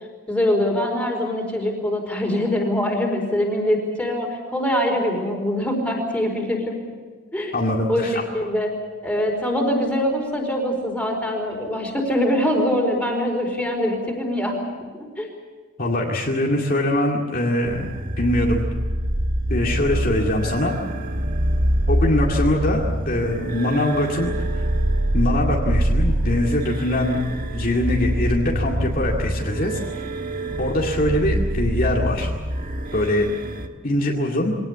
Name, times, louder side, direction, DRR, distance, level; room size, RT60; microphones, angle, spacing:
voice 1, 0.3-6.7 7.3-7.5 7.9-8.7 9.0-14.6 15.2-15.3, left 1 dB, 5° left, 0 dB, 4.7 m, -23 dB
voice 2, 7.5-8.2 15.8-17.9 18.2-18.6 19.5-20.7 21.9-24.3 25.1-27.2 27.5-29.8 30.6-32.3 32.9-33.3 33.8-34.6, left 1 dB, 45° left, -2 dB, 2.3 m, -22 dB
sound 1, 17.6-33.7, right 1 dB, 40° right, 1.5 m, -25 dB
24.0 x 18.5 x 8.4 m, 1.5 s
head